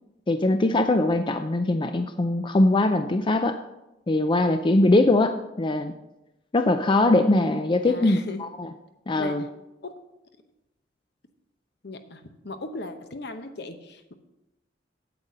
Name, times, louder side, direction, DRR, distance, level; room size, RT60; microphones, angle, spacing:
voice 1, 0.3-3.6 4.1-5.9 6.5-8.7 9.1-9.4, left 2 dB, 25° left, 7 dB, 0.4 m, -21 dB
voice 2, 7.8-8.5 9.2-9.5 9.8-10.0 11.8-14.1, left 2 dB, 60° left, 8 dB, 0.9 m, -37 dB
8.8 x 7.7 x 5.5 m, 0.94 s
head